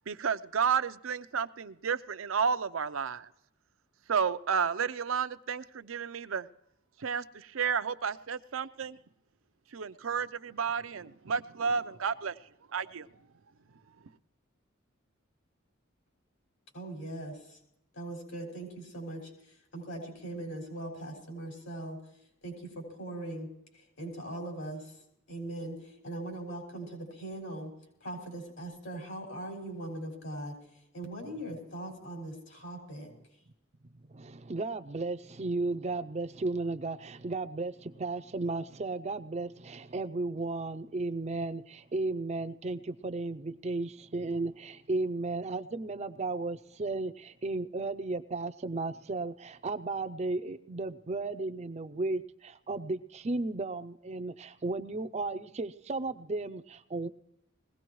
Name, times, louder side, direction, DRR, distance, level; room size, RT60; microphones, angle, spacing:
voice 1, 0.1-3.3 4.1-6.5 7.0-9.0 9.7-12.4 12.7-13.1, right 6 dB, 80° right, 11 dB, 0.6 m, -31 dB
voice 2, 16.7-17.6 17.9-22.0 22.4-23.5 23.7-25.0 25.3-27.7 28.0-30.5 30.9-33.1, right 1 dB, 70° left, 0 dB, 6.1 m, -40 dB
voice 3, 34.1-57.1, right 3 dB, 35° right, 10 dB, 0.5 m, -34 dB
21.0 x 17.0 x 3.1 m, 0.78 s
head